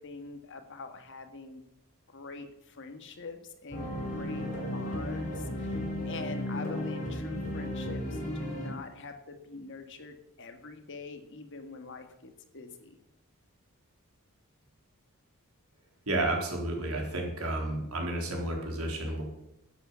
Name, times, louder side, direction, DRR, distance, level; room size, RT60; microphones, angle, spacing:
voice 1, 0.0-1.6 2.1-4.5 4.7-13.0, left 3 dB, 55° left, 6 dB, 1.7 m, -44 dB
sound 1, 3.7-8.7, left 1 dB, 35° left, 4.9 m, -34 dB
voice 2, 16.1-19.2, right 2 dB, 75° right, 1 dB, 3.9 m, -31 dB
12.5 x 8.6 x 7.0 m, 0.85 s
head